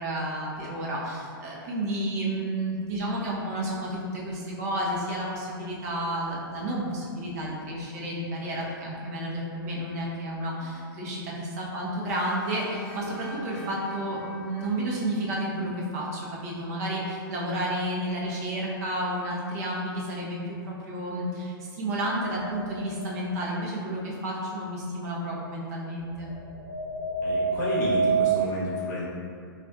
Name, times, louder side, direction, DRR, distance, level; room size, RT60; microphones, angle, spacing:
voice 1, 0.0-26.3, right 1 dB, 45° right, -4 dB, 0.7 m, -31 dB
sound 1, 12.1-15.9, left 1 dB, 5° left, 0.6 m, -44 dB
sound 2, 22.2-22.9 26.2-28.4, right 4 dB, 90° left, 0.5 m, -27 dB
voice 2, 27.2-29.0, equal, 50° left, -6 dB, 0.9 m, -31 dB
4.0 x 2.4 x 2.3 m, 2.4 s
hypercardioid pair, 145°, 12 cm